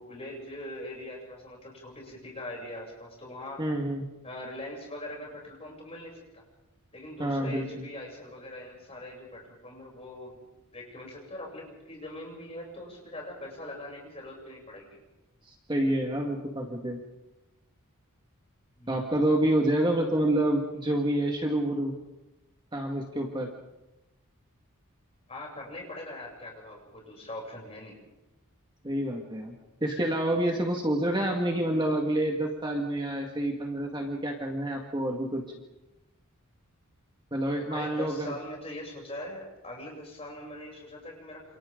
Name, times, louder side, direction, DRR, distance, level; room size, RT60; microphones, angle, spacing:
voice 1, 0.0-3.6 4.2-6.4 6.9-15.0 18.8-19.0 25.3-27.9 37.7-41.4, left 1 dB, 25° left, -2 dB, 7.9 m, -42 dB
voice 2, 3.6-4.1 7.2-7.9 15.5-17.0 18.9-21.9 22.7-23.5 28.8-29.6 29.8-35.4 37.3-38.3, right 1 dB, 20° right, 1 dB, 2.0 m, -28 dB
28.5 x 28.5 x 3.9 m, 1.0 s
head